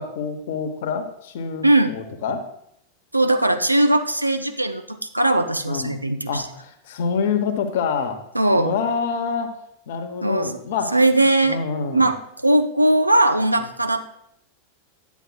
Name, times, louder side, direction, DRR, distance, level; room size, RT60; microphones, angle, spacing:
voice 1, 0.0-2.5 5.7-6.0 6.3-8.2 8.6-9.5 9.9-11.0 11.4-12.1, left 6 dB, 55° left, 7 dB, 0.9 m, -26 dB
voice 2, 3.1-6.4 8.3-8.7 10.2-10.6 10.9-11.6 11.9-14.1, right 1 dB, 85° right, 8 dB, 0.5 m, -19 dB
9.1 x 8.2 x 2.3 m, 0.73 s
figure-of-eight pair, 90°, 0 cm